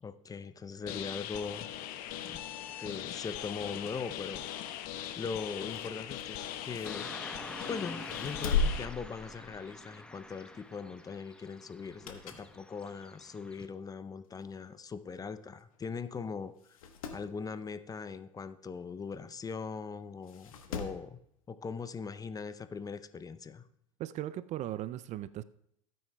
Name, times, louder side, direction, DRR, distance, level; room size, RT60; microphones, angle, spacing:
voice 1, 0.0-1.7 2.3-2.4 2.8-4.4 5.2-7.4 7.7-16.5 17.1-21.2 21.5-23.6, left 5 dB, 20° left, 13 dB, 0.5 m, -40 dB
sound 1, 0.9-8.9, left 11 dB, 55° left, 0.9 m, -40 dB
sound 2, 5.6-7.5 8.0-9.9 10.2-10.5 11.7-12.6 13.0-13.1 14.0-14.1 14.4-14.5 14.6-14.7 15.6-15.8 16.1-16.2 16.6-17.3 19.1-19.2 20.2-21.1 22.4-22.5, left 4 dB, 80° left, 1.2 m, -37 dB
Car passing by / Traffic noise roadway noise, 6.8-13.7, left 1 dB, 5° left, 0.9 m, -47 dB
voice 2, 24.0-25.4, right 13 dB, 40° right, 16 dB, 0.4 m, -37 dB
16.0 x 9.2 x 2.3 m, 0.74 s
hypercardioid pair, 80°, 18 cm